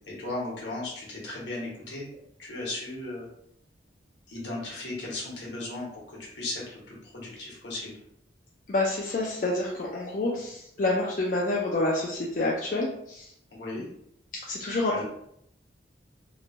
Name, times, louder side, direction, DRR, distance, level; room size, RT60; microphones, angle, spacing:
voice 1, 0.1-2.1 2.4-3.3 4.3-7.9 13.5-13.8 14.9-15.0, left 2 dB, 75° left, -4 dB, 1.0 m, -36 dB
voice 2, 8.7-13.3 14.5-15.0, left 2 dB, 45° left, -4 dB, 0.4 m, -28 dB
2.9 x 2.1 x 2.5 m, 0.72 s
head